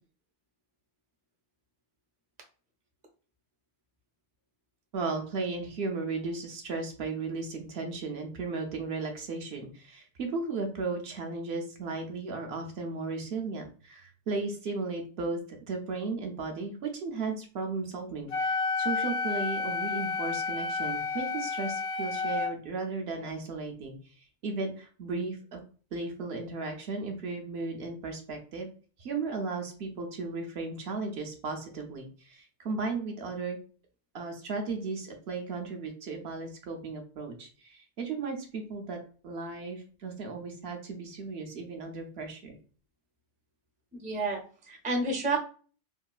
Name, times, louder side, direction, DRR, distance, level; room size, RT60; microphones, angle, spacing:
voice 1, 4.9-24.0 24.4-25.6 25.9-28.7 29.0-33.6 34.1-42.6, right 3 dB, 65° right, 3 dB, 0.9 m, -35 dB
Wind instrument woodwind instrument, 18.3-22.5, left 4 dB, 65° left, 0.7 m, -31 dB
voice 2, 43.9-44.4 44.7-45.4, right 2 dB, 10° right, 1 dB, 0.4 m, -29 dB
3.6 x 2.3 x 2.3 m, 0.40 s
omnidirectional pair, 1.2 m